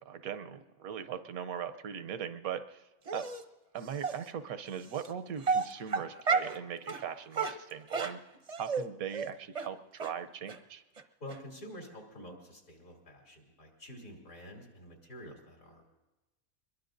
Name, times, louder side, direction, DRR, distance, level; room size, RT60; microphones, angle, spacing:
voice 1, 0.0-3.3 3.7-8.2 8.6-10.8, right 8 dB, 80° right, 12 dB, 1.2 m, -40 dB
Dog, 3.1-3.4 4.0-4.1 4.9-5.1 5.4-6.6 6.9-7.0 7.3-8.8 9.1-9.3 9.5-9.7 10.0-10.1 10.5-10.6 11.0-11.1 11.3-11.4, right 5 dB, 35° right, 0.6 m, -31 dB
voice 2, 11.2-15.8, equal, 70° left, 0 dB, 3.5 m, -48 dB
24.0 x 21.5 x 2.6 m, 1.1 s
omnidirectional pair, 1.5 m